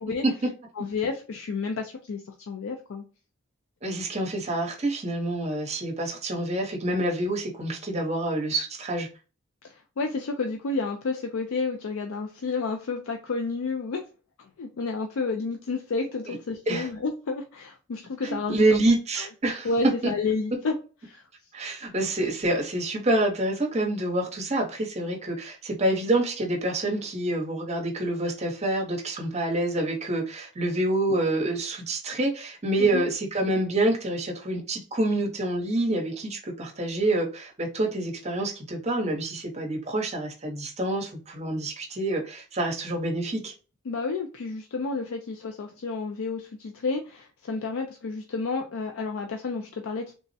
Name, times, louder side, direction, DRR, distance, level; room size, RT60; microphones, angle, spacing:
voice 1, 0.8-3.0 9.7-14.0 14.6-18.8 19.6-20.7 21.0-21.2 32.8-33.0 43.9-50.1, left 4 dB, 70° left, 0.4 m, -30 dB
voice 2, 3.8-9.1 16.3-16.4 16.7-16.9 18.2-19.7 20.0-20.1 21.5-43.5, right 1 dB, 30° right, 0.7 m, -27 dB
3.3 x 2.1 x 2.6 m
head